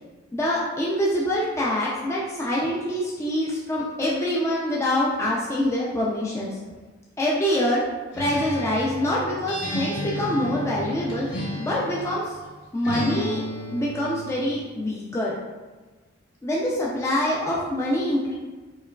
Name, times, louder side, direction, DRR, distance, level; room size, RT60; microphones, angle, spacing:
voice 1, 0.3-6.6 7.2-7.8 8.2-11.3 11.6-12.4 12.7-13.4 13.7-15.4 16.4-18.4, left 1 dB, 15° left, -5 dB, 0.3 m, -25 dB
Acoustic guitar, 8.1-12.2 12.8-14.4, left 1 dB, 60° left, 0.9 m, -32 dB
4.6 x 2.9 x 2.2 m, 1.3 s
head